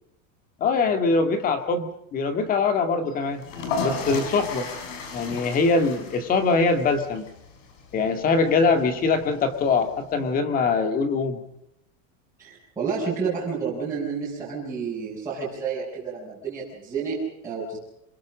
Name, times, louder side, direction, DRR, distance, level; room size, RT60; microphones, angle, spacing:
voice 1, 0.6-3.4 3.8-4.7 5.1-7.3 7.9-11.4, left 4 dB, 20° left, 8 dB, 2.1 m, -23 dB
sound 1, 3.3-10.1, left 3 dB, 65° left, 7.0 m, -35 dB
voice 2, 12.4-17.8, right 5 dB, 5° right, -9 dB, 6.4 m, -30 dB
27.5 x 22.5 x 5.1 m, 0.81 s
supercardioid pair, 180°, 40 cm